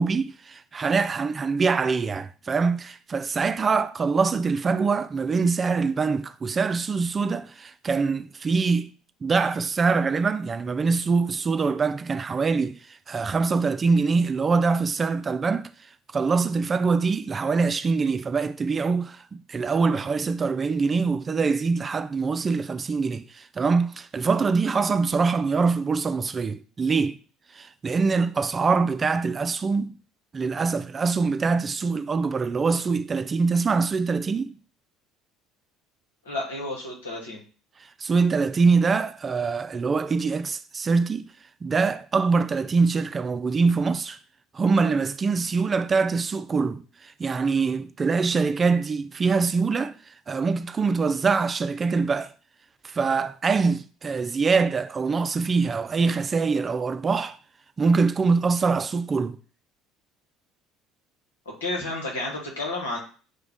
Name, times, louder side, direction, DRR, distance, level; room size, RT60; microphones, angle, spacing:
voice 1, 0.0-8.9 9.2-15.7 16.1-27.2 27.5-30.0 30.3-34.6 37.8-41.3 41.6-44.2 44.5-52.3 52.8-57.4 57.8-59.4, right 4 dB, 30° right, 0.4 m, -24 dB
voice 2, 36.2-37.4 61.4-63.0, left 2 dB, 85° left, 1.4 m, -31 dB
6.0 x 2.4 x 3.5 m
hypercardioid pair, 65°, 0 cm